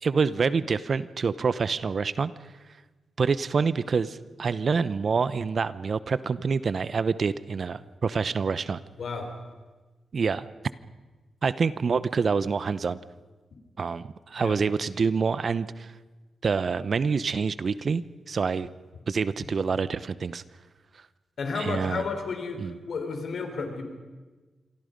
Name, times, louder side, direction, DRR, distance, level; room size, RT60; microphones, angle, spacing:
voice 1, 0.0-2.3 3.2-8.8 10.1-10.5 11.4-13.0 13.8-15.9 16.4-18.7 19.1-20.4 21.6-22.0 22.6-22.7, right 5 dB, 60° right, 16 dB, 0.8 m, -26 dB
voice 2, 9.0-9.3 14.3-14.6 21.4-23.8, left 4 dB, 70° left, 5 dB, 4.1 m, -32 dB
27.0 x 23.5 x 5.3 m, 1.3 s
cardioid pair, 50°, 0 cm